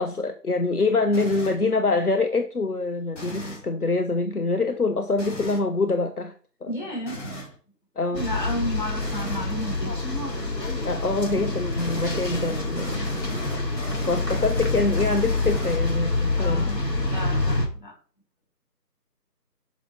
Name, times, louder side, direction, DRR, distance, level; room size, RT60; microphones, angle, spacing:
voice 1, 0.0-6.3 6.6-6.7 8.0-8.3 10.8-13.1 14.0-16.8, left 3 dB, 65° left, 6 dB, 1.1 m, -25 dB
sound 1, 1.1-1.7 3.1-3.7 5.2-5.7 7.1-7.6 9.0-9.5 11.8-16.1, equal, 45° left, 4.8 m, -37 dB
voice 2, 6.7-7.2 8.1-9.9 16.3-17.9, equal, 30° left, -2 dB, 4.0 m, -32 dB
sound 2, 8.1-17.7, left 2 dB, 85° left, 3.6 m, -27 dB
12.0 x 5.1 x 4.1 m, 0.40 s
figure-of-eight pair, 175°, 48 cm